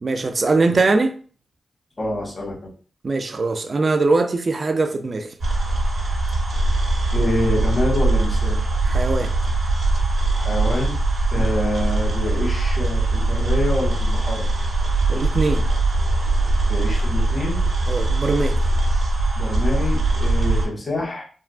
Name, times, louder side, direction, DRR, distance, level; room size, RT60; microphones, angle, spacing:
voice 1, 0.0-1.2 3.0-5.3 8.9-9.3 11.4-11.5 15.1-15.7 17.9-18.6, right 3 dB, 50° right, 0.4 m, -21 dB
voice 2, 2.0-2.7 7.1-8.6 10.4-11.0 11.3-14.5 16.7-17.7 19.4-21.2, left 1 dB, 40° left, 1.5 m, -26 dB
sound 1, 5.4-20.7, right 2 dB, 70° right, 1.0 m, -21 dB
3.6 x 2.1 x 2.3 m
cardioid pair, 60°, 0 cm